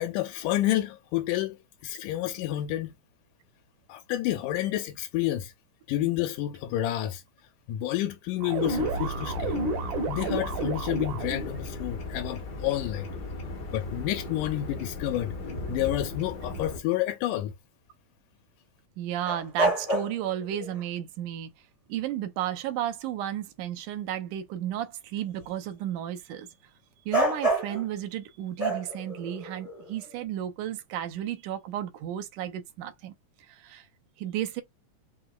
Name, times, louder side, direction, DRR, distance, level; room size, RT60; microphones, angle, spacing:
voice 1, 0.0-3.0 3.9-5.5 5.9-7.2 7.7-9.6 10.1-13.1 13.7-15.3 15.7-17.5, left 13 dB, 90° left, 2.2 m, -29 dB
sound 1, 8.4-11.5, right 3 dB, 60° right, 1.3 m, -30 dB
sound 2, 8.6-16.8, left 2 dB, 75° left, 0.9 m, -37 dB
voice 2, 19.0-21.5 21.9-26.5 27.1-33.1 33.5-33.9 34.2-34.6, right 11 dB, 85° right, 2.4 m, -33 dB
sound 3, 19.3-20.8 27.1-27.8 28.6-30.0, right 1 dB, 45° left, 0.4 m, -28 dB
5.9 x 2.9 x 2.4 m
omnidirectional pair, 3.6 m